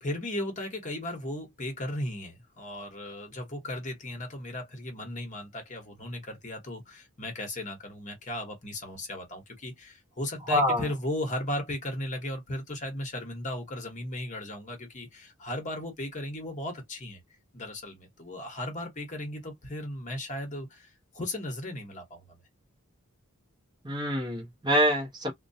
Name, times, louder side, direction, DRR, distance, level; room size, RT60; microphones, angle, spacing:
voice 1, 0.0-17.2 17.5-22.4, left 1 dB, 35° left, 1.0 m, -36 dB
voice 2, 10.5-10.8 23.8-25.3, equal, 20° right, 0.9 m, -25 dB
2.2 x 2.2 x 2.6 m
head